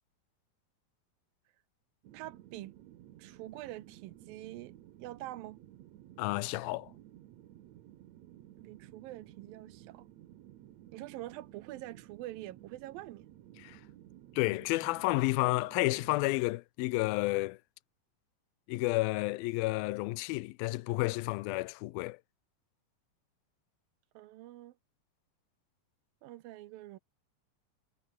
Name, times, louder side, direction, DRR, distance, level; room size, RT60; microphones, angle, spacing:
sound 1, 2.0-16.4, right 13 dB, 65° right, 1.9 m, -55 dB
voice 1, 2.1-2.7 3.2-4.7 5.0-5.6 8.6-10.1 10.9-13.3 24.1-24.8 26.2-27.0, right 15 dB, 80° right, 2.7 m, -45 dB
voice 2, 6.2-6.9 13.6-13.8 14.4-17.6 18.7-22.2, left 21 dB, 85° left, 2.4 m, -31 dB
omnidirectional pair, 4.2 m